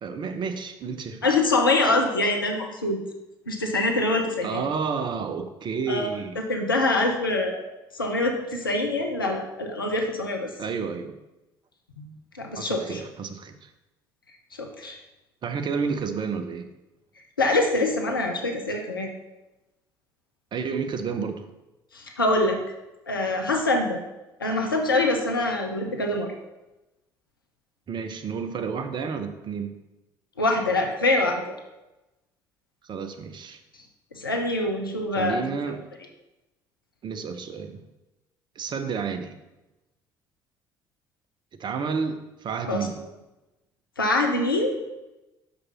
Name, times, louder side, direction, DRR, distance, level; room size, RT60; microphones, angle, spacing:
voice 1, 0.0-1.3 4.4-6.4 10.6-11.1 12.6-13.7 15.4-16.7 20.5-21.5 27.9-29.8 32.8-33.6 35.1-35.8 37.0-37.8 38.6-39.4 41.6-43.1, right 5 dB, 45° right, 7 dB, 0.8 m, -30 dB
voice 2, 1.2-3.0 3.5-4.6 5.9-6.1 6.4-7.6 7.9-10.5 12.0-12.1 12.4-13.0 14.6-15.0 17.4-19.1 21.9-22.6 23.1-24.0 24.4-26.3 30.4-31.5 34.1-35.5 42.7-42.8 44.0-44.8, left 2 dB, 85° left, 3 dB, 0.7 m, -24 dB
6.1 x 5.2 x 5.8 m, 0.99 s
figure-of-eight pair, 50°, 11 cm